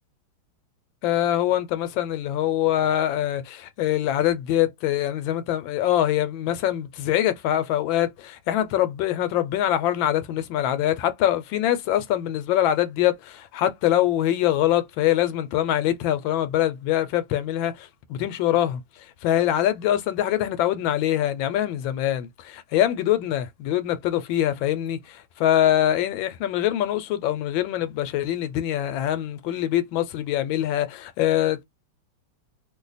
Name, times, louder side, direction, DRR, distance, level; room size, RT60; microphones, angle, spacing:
voice 1, 1.0-31.6, left 12 dB, 85° left, 1.4 m, -24 dB
3.1 x 2.2 x 3.9 m
omnidirectional pair, 2.1 m